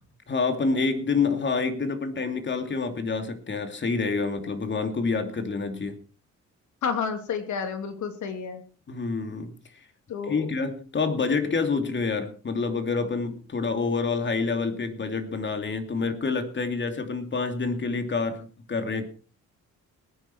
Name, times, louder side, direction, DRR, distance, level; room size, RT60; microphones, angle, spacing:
voice 1, 0.3-6.0 8.9-9.6 10.3-19.1, left 4 dB, 40° left, 2.8 m, -27 dB
voice 2, 6.8-8.6 10.1-10.5, left 6 dB, 70° left, 3.0 m, -30 dB
19.5 x 10.0 x 4.6 m
cardioid pair, 90°, 30 cm